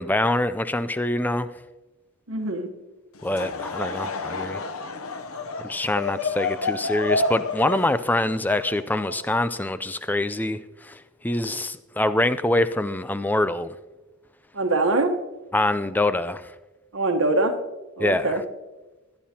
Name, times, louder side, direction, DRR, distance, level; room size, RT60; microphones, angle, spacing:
voice 1, 0.0-1.5 3.2-4.6 5.6-13.7 15.5-16.5 18.0-18.4, left 1 dB, 10° left, 13 dB, 0.4 m, -25 dB
voice 2, 2.3-2.7 14.5-15.1 16.9-17.5 18.0-18.4, right 2 dB, 70° right, 4 dB, 1.2 m, -23 dB
Laughter / Crowd, 3.2-9.6, left 3 dB, 85° left, 0.8 m, -30 dB
20.0 x 11.0 x 2.9 m, 1.1 s
head